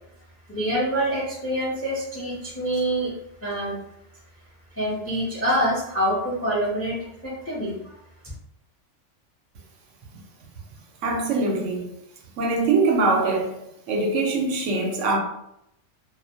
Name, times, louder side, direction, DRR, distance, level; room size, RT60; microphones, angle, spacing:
voice 1, 0.5-3.1 3.4-3.8 4.8-7.7, right 1 dB, 25° left, 0.3 m, -26 dB
voice 2, 11.0-11.9 12.4-13.5 13.9-15.2, right 3 dB, 80° right, 0.9 m, -22 dB
2.4 x 2.1 x 2.6 m
omnidirectional pair, 1.3 m